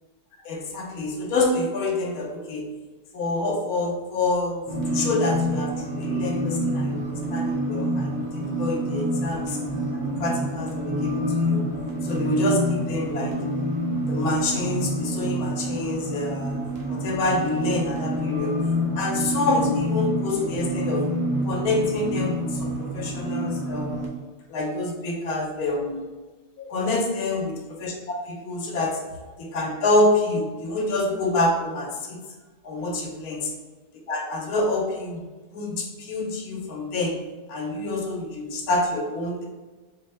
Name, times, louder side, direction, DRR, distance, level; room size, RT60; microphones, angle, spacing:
voice 1, 0.4-2.6 3.1-9.6 9.9-11.7 12.0-13.4 14.1-16.6 16.9-18.7 18.9-21.1 21.4-24.0 24.5-26.1 26.6-29.0 29.4-32.2 32.6-33.5 34.1-35.2 35.5-37.2 37.5-39.4, left 2 dB, 70° left, 0 dB, 1.2 m, -27 dB
sound 1, 4.7-24.1, equal, 50° right, 0.5 m, -27 dB
4.1 x 2.2 x 3.2 m, 1.3 s
omnidirectional pair, 1.7 m